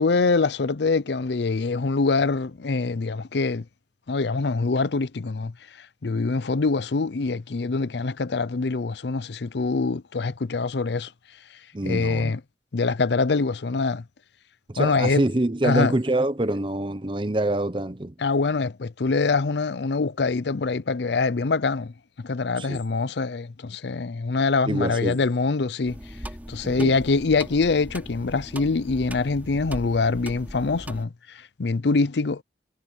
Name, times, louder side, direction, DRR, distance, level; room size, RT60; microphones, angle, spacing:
voice 1, 0.0-3.6 4.1-11.1 11.8-12.4 12.7-14.0 14.8-15.2 15.6-15.9 18.2-21.9 22.2-26.0 26.5-32.4, left 4 dB, 70° left, 0.6 m, -24 dB
voice 2, 11.7-12.3 14.7-18.1 22.6-22.8 24.7-25.2 26.6-26.9, right 1 dB, 25° right, 0.8 m, -25 dB
sound 1, 25.9-31.1, equal, 10° right, 3.7 m, -39 dB
head